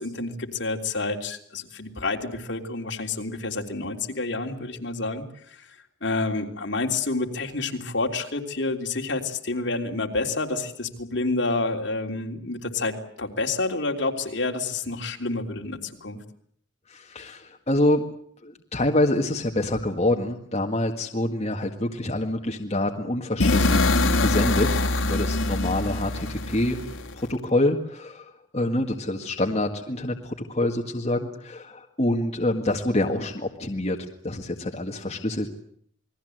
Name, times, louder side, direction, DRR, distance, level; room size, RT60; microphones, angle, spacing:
voice 1, 0.0-5.7 6.0-16.2, left 3 dB, 60° left, 3 dB, 3.3 m, -29 dB
voice 2, 16.9-18.0 18.4-26.8 27.1-34.0 34.2-35.5, left 1 dB, 35° left, 2 dB, 1.8 m, -26 dB
sound 1, 23.4-27.3, left 2 dB, 75° left, 1.9 m, -23 dB
28.5 x 21.0 x 7.9 m, 0.63 s
head